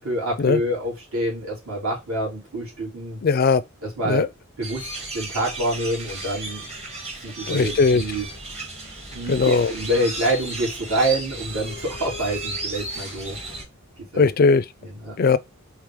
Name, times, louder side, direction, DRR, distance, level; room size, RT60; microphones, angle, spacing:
voice 1, 0.0-3.2 4.0-4.3 4.6-6.7 7.2-8.2 9.1-13.4 14.1-14.3 14.8-15.2, right 1 dB, 70° right, 3.0 m, -27 dB
voice 2, 3.2-3.6 4.0-4.3 7.5-8.0 9.3-9.7 14.2-14.6 15.2-15.4, left 4 dB, 40° left, 0.4 m, -18 dB
sound 1, 4.6-13.6, right 2 dB, 30° right, 1.2 m, -34 dB
4.8 x 2.9 x 3.6 m
head